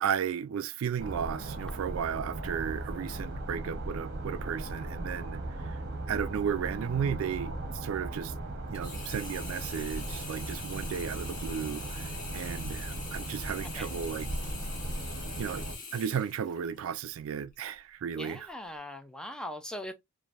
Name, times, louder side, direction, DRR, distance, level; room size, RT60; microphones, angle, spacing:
voice 1, 0.0-5.8 6.1-8.3 8.7-14.3 15.4-15.6 15.9-18.5, right 8 dB, 80° right, 0.3 m, -34 dB
sound 1, 1.0-15.8, right 2 dB, 55° right, 0.9 m, -37 dB
Sink (filling or washing), 8.7-17.0 17.5-17.6, left 4 dB, 40° left, 1.0 m, -44 dB
voice 2, 18.1-19.9, left 1 dB, 5° left, 0.3 m, -40 dB
3.2 x 2.5 x 2.3 m
head